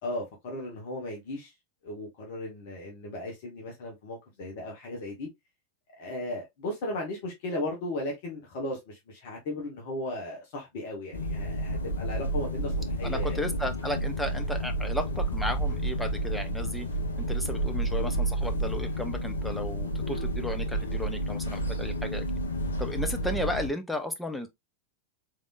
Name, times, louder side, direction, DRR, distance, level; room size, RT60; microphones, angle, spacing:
voice 1, 0.0-1.5 1.8-5.3 6.0-13.4, left 1 dB, 50° left, 1.3 m, -36 dB
sound 1, 11.1-23.7, right 1 dB, 75° left, 0.7 m, -30 dB
voice 2, 13.0-16.9 17.3-22.2 22.8-24.5, left 1 dB, 5° left, 0.7 m, -34 dB
3.5 x 3.5 x 2.4 m
figure-of-eight pair, 90°, 0 cm